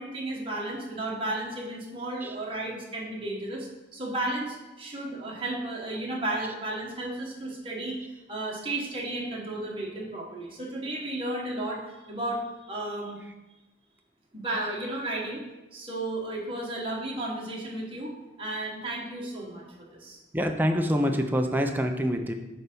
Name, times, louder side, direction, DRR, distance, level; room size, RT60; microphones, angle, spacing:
voice 1, 0.0-8.0 8.3-13.2 14.3-15.4 15.7-18.1 18.4-19.6 19.9-20.2, right 1 dB, 30° right, -3 dB, 1.4 m, -33 dB
voice 2, 20.3-22.3, equal, 10° right, 4 dB, 0.5 m, -26 dB
8.4 x 3.4 x 5.4 m, 1.1 s
head